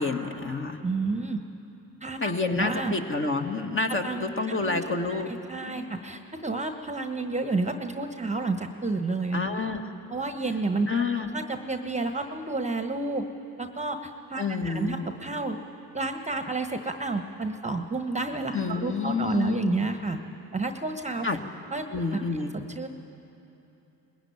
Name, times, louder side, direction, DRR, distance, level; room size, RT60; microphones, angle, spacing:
voice 1, 0.0-0.8 2.2-5.3 5.6-6.2 9.3-9.9 10.9-11.3 14.4-15.0 18.5-19.9 21.2-21.4 21.9-22.6, left 4 dB, 30° left, 3 dB, 2.0 m, -29 dB
voice 2, 0.8-1.4 2.0-2.9 4.0-4.8 5.1-5.2 5.5-9.4 10.1-10.9 11.3-13.3 13.6-15.6 15.9-20.2 20.5-21.3 21.7-21.9 22.1-22.2 22.5-22.9, right 3 dB, 15° right, 7 dB, 1.3 m, -30 dB
20.5 x 16.5 x 9.6 m, 2.9 s
hypercardioid pair, 55°, 42 cm